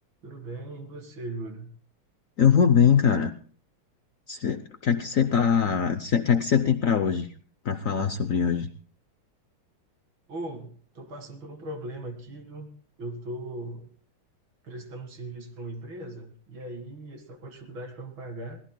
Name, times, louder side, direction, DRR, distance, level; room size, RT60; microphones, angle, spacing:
voice 1, 0.2-1.7 10.3-12.7 13.0-13.9 14.6-18.6, right 1 dB, 65° right, 6 dB, 2.7 m, -39 dB
voice 2, 2.4-3.3 4.3-7.3 7.6-8.7, left 7 dB, 70° left, 10 dB, 0.7 m, -22 dB
23.5 x 17.0 x 2.2 m, 0.43 s
omnidirectional pair, 2.3 m